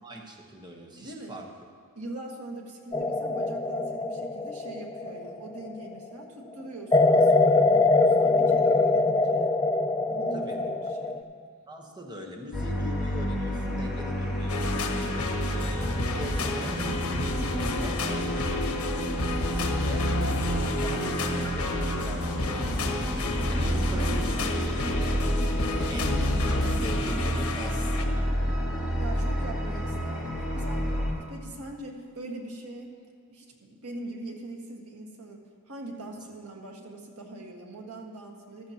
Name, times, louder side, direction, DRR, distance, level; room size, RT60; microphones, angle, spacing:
voice 1, 0.0-1.5 10.3-10.6 11.7-19.4 19.8-23.1 23.5-28.3, equal, 20° right, 0 dB, 1.1 m, -41 dB
voice 2, 1.0-1.3 1.9-9.5 10.1-11.2 29.0-32.9 33.3-38.7, right 2 dB, 90° right, 1 dB, 1.7 m, -42 dB
sound 1, 2.9-5.9 6.9-11.2, left 3 dB, 15° left, 0.4 m, -23 dB
sound 2, 12.5-31.1, equal, ahead, 2.5 m, -30 dB
sound 3, 14.5-28.0, left 2 dB, 75° left, 1.2 m, -30 dB
15.0 x 13.0 x 2.9 m, 2.3 s
head